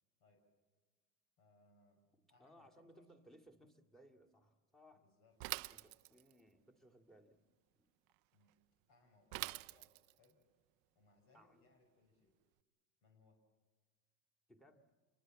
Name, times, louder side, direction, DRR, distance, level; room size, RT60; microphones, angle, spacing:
voice 1, 1.4-3.1 4.9-5.7 8.3-8.6 8.9-10.4 10.9-12.4 13.0-13.4, left 3 dB, 65° left, 4 dB, 6.2 m, -72 dB
voice 2, 2.1-5.1 5.7-7.4 7.8-7.9 11.3-11.7 14.5-14.9, equal, ahead, 6 dB, 2.1 m, -64 dB
Bicycle / Mechanisms, 5.4-6.4 9.3-10.2, right 24 dB, 65° right, 0.7 m, -44 dB
27.5 x 22.5 x 7.5 m, 1.4 s
supercardioid pair, 135°, 37 cm